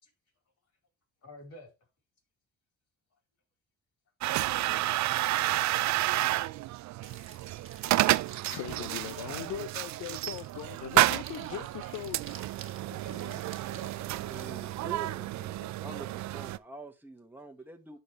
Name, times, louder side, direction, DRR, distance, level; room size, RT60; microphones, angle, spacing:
voice 1, 1.2-1.7 12.8-14.1 15.6-15.7, left 1 dB, 55° left, 4.1 m, -50 dB
sound 1, 4.2-16.6, right 16 dB, 65° right, 0.4 m, -30 dB
sound 2, 7.0-14.8, right 6 dB, 45° right, 1.5 m, -52 dB
voice 2, 8.5-12.4, left 12 dB, 90° left, 0.6 m, -40 dB
voice 3, 14.0-18.0, right 3 dB, 5° right, 1.5 m, -46 dB
12.0 x 4.2 x 3.2 m
cardioid pair, 90°, 30 cm